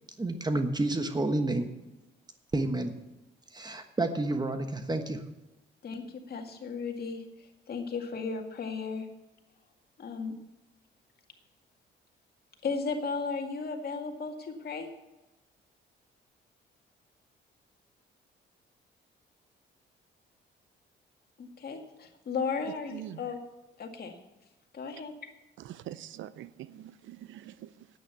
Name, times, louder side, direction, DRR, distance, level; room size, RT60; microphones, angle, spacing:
voice 1, 0.2-1.7 2.5-2.9 3.5-5.2, right 2 dB, 20° right, 1.2 m, -29 dB
voice 2, 5.8-7.2 7.7-9.1 10.0-10.3 12.6-14.9 21.4-23.4 23.8-24.1 24.7-25.1, left 5 dB, 50° left, 2.0 m, -35 dB
voice 3, 22.9-23.3 25.6-27.9, right 12 dB, 75° right, 0.6 m, -44 dB
9.4 x 8.9 x 7.0 m
cardioid pair, 90°, 20 cm